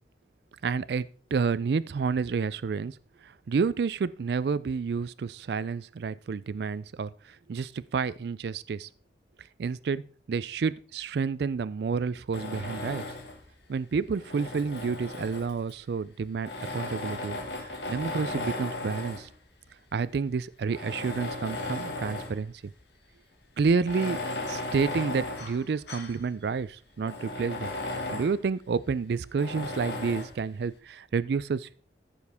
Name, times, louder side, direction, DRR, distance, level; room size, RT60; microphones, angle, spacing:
voice 1, 0.6-3.0 3.2-8.9 9.6-10.0 10.3-13.0 13.7-19.3 19.9-22.7 23.6-24.2 24.5-27.7 28.1-31.8, right 5 dB, 65° right, 18 dB, 0.4 m, -30 dB
Tools, 12.3-13.5 14.1-15.7 16.4-19.3 20.0-20.1 20.7-22.4 22.8-22.9 23.8-26.2 26.6-26.7 27.0-28.4 29.4-30.4, left 2 dB, 75° left, 2.0 m, -36 dB
14.0 x 7.2 x 3.5 m, 0.42 s
head